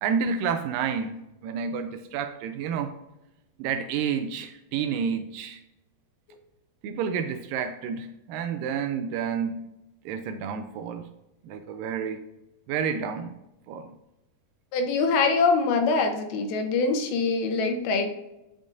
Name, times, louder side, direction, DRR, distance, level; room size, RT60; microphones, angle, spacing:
voice 1, 0.0-2.9 3.6-5.6 6.8-9.6 10.1-11.1 11.4-12.2 12.7-13.4 13.7-13.9, right 6 dB, 80° right, 7 dB, 2.0 m, -30 dB
voice 2, 14.7-18.1, left 4 dB, 90° left, 5 dB, 2.8 m, -24 dB
8.7 x 5.3 x 2.5 m, 0.92 s
omnidirectional pair, 4.2 m